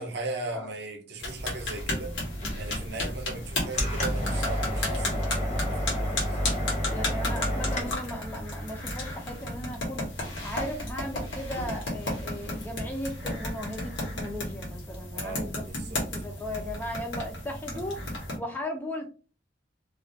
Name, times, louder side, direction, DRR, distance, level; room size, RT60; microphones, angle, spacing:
voice 1, 0.0-2.2 2.5-6.4 15.1-16.0, right 2 dB, 60° right, 0.6 m, -38 dB
sound 1, 1.2-18.4, left 1 dB, 70° left, 0.9 m, -34 dB
sound 2, 1.4-7.9, equal, 40° left, 0.7 m, -31 dB
voice 2, 6.9-10.1 10.4-18.0 18.4-19.1, left 1 dB, 10° left, 0.3 m, -37 dB
2.3 x 2.2 x 2.5 m
head